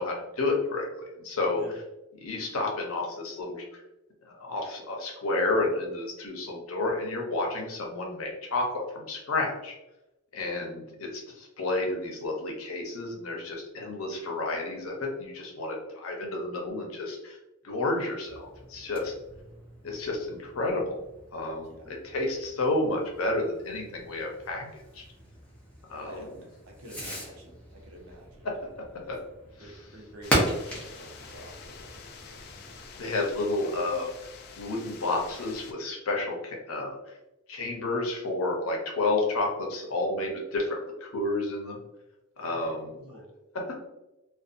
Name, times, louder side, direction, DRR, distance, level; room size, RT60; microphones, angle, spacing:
voice 1, 0.0-1.6 2.2-3.8 4.2-9.7 10.3-17.4 17.6-19.1 19.8-20.9 21.3-25.0 25.9-26.3 28.4-28.6 29.1-29.2 29.6-29.8 33.0-34.1 34.5-37.1 37.5-41.8 42.4-43.0 43.5-43.6, left 2 dB, 85° left, 0 dB, 0.7 m, -31 dB
Fireworks, 18.2-32.8, equal, 5° left, 0.6 m, -37 dB
voice 2, 26.6-28.5 29.0-29.1 29.6-32.8 42.4-42.7 43.0-43.3, right 1 dB, 85° right, 0 dB, 0.7 m, -48 dB
sound 1, 30.2-35.7, left 5 dB, 50° left, 0.3 m, -47 dB
2.5 x 2.3 x 2.5 m, 0.95 s
head